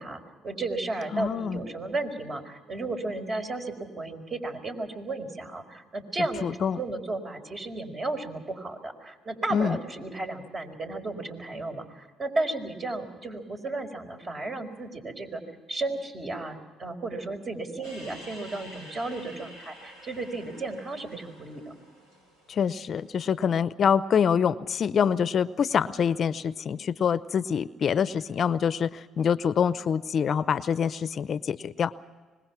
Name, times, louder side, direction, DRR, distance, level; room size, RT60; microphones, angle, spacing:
voice 1, 0.0-15.4 15.7-21.7, right 2 dB, 40° right, 4 dB, 4.8 m, -34 dB
voice 2, 1.1-1.6 6.4-6.8 9.5-9.8 22.5-31.9, left 7 dB, 55° left, 15 dB, 0.7 m, -25 dB
sound 1, 17.8-23.2, equal, 90° right, 7.1 m, -49 dB
25.0 x 21.5 x 6.0 m, 1.4 s
supercardioid pair, 65°, 0 cm